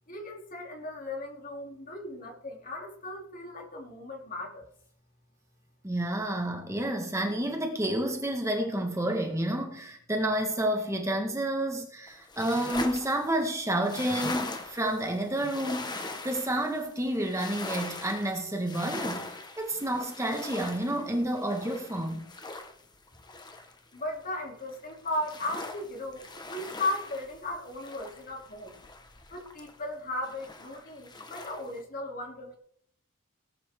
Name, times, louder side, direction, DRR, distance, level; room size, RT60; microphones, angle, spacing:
voice 1, 0.1-4.6 23.9-28.8 29.3-32.6, left 1 dB, 40° left, 3.2 m, -36 dB
voice 2, 5.8-15.9 16.2-19.3 19.6-22.3, right 1 dB, 15° right, 1.6 m, -30 dB
sound 1, 12.1-24.3 24.6-29.9 30.2-31.8, left 2 dB, 20° left, 1.3 m, -41 dB
18.5 x 10.0 x 3.7 m
head